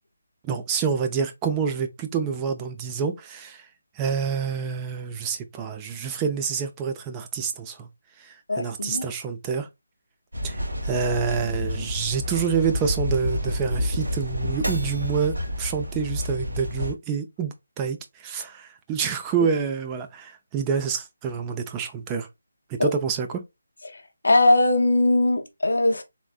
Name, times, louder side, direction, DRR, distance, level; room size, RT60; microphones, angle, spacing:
voice 1, 0.4-3.7 4.0-7.9 8.2-9.7 10.4-22.3 22.7-23.4, right 6 dB, 15° right, 0.4 m, -27 dB
voice 2, 8.5-9.1 22.8-22.9 24.2-26.0, left 2 dB, 80° left, 0.7 m, -20 dB
sound 1, 10.3-16.9, left 1 dB, 90° right, 1.9 m, -29 dB
3.5 x 2.5 x 2.3 m
figure-of-eight pair, 160°, 0 cm